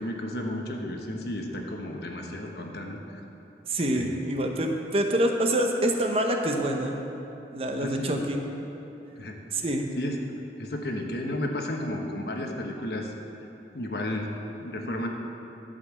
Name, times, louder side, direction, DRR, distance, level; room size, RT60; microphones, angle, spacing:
voice 1, 0.0-3.0 3.9-4.1 7.8-8.2 9.2-9.4 10.0-10.2 10.6-13.1 13.7-15.1, left 1 dB, 65° left, 2 dB, 1.1 m, -33 dB
voice 2, 3.7-6.9 7.5-8.4 9.5-9.9, right 1 dB, 35° right, 3 dB, 0.8 m, -26 dB
11.5 x 5.4 x 7.5 m, 3.0 s
head